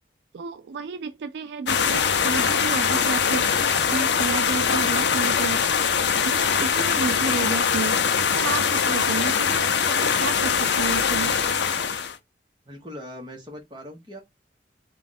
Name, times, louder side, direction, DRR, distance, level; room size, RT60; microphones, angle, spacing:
voice 1, 0.3-3.5 3.9-5.6 5.9-11.4, right 5 dB, 65° right, 0.3 m, -31 dB
sound 1, 1.7-12.2, left 6 dB, 70° left, 0.5 m, -22 dB
voice 2, 12.7-14.2, equal, 25° right, 1.2 m, -40 dB
3.5 x 2.4 x 4.0 m
head